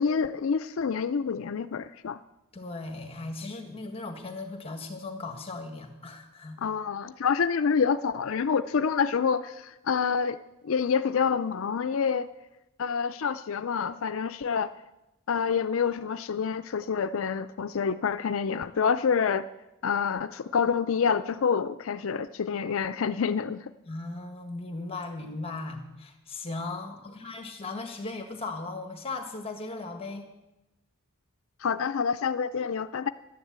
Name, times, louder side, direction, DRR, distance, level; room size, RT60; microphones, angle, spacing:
voice 1, 0.0-2.2 6.6-10.4 10.6-12.3 12.8-14.7 15.3-19.5 19.8-23.6 31.6-33.1, left 6 dB, 70° left, 12 dB, 0.4 m, -27 dB
voice 2, 2.5-6.6 23.9-30.3, left 3 dB, 25° left, 5 dB, 1.5 m, -37 dB
12.5 x 10.5 x 8.1 m, 0.96 s
head